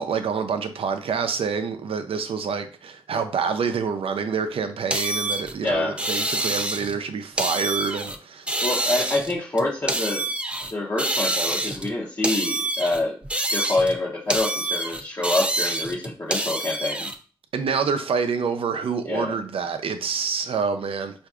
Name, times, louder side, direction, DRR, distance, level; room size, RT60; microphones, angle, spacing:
voice 1, 0.0-8.5 17.5-21.3, right 5 dB, 70° right, 0.5 m, -27 dB
sound 1, 4.9-7.0 7.4-8.2 8.5-10.7 11.0-11.9 12.2-14.0 14.3-17.1, right 1 dB, 10° right, 0.5 m, -27 dB
voice 2, 5.6-6.0 8.6-10.3 10.7-13.2 13.5-17.1 19.0-19.4, left 2 dB, 30° left, 0.7 m, -26 dB
4.6 x 2.6 x 2.4 m
cardioid pair, 55°, 10 cm